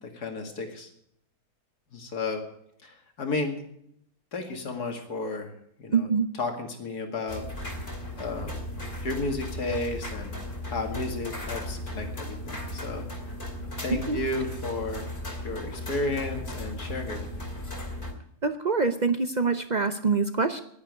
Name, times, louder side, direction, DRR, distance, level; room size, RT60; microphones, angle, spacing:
voice 1, 0.0-0.9 1.9-2.4 2.8-3.6 4.3-5.5 5.8-6.1 6.4-7.4 8.2-8.6 9.0-10.3 10.7-13.0 13.8-15.1 15.4-17.3, left 2 dB, 70° left, 4 dB, 2.6 m, -32 dB
voice 2, 5.9-6.3 13.9-14.2 18.4-20.6, right 4 dB, 55° right, 9 dB, 0.5 m, -25 dB
sound 1, 7.3-18.1, left 1 dB, 40° left, 2.6 m, -36 dB
11.0 x 10.0 x 9.4 m, 0.72 s
omnidirectional pair, 1.7 m